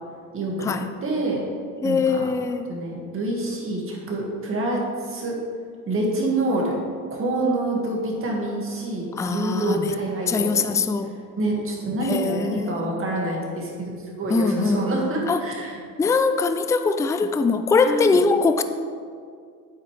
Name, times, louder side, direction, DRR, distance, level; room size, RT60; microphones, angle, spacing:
voice 1, 0.3-0.7 1.0-1.4 1.8-2.3 2.7-5.4 5.9-6.8 7.1-10.8 11.4-15.8 17.8-18.2, right 2 dB, 40° right, -2 dB, 2.1 m, -27 dB
voice 2, 1.8-2.7 9.2-9.9 10.3-11.2 12.0-12.9 14.3-15.4 16.0-18.6, left 4 dB, 10° left, 9 dB, 0.3 m, -22 dB
9.0 x 8.0 x 3.4 m, 2.2 s
cardioid pair, 105°, 34 cm